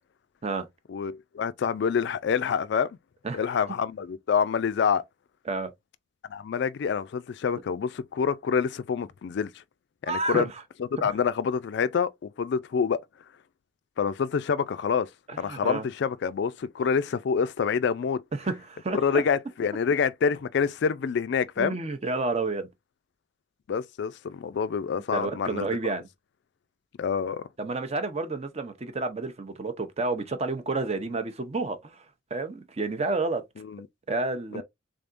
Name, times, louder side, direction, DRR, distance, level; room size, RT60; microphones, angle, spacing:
voice 1, 0.9-3.0 3.3-5.0 6.3-9.5 10.0-10.5 11.0-13.0 14.0-15.1 15.4-18.2 18.9-21.8 23.7-25.7 27.0-27.4 33.6-33.9 34.5-34.6, left 6 dB, 60° left, 0.3 m, -27 dB
voice 2, 10.1-10.5 15.3-15.9 18.3-19.0 21.6-22.7 25.1-26.1 27.6-32.0 32.3-33.4 34.1-34.6, right 3 dB, 35° right, 0.6 m, -30 dB
3.7 x 3.4 x 2.5 m
head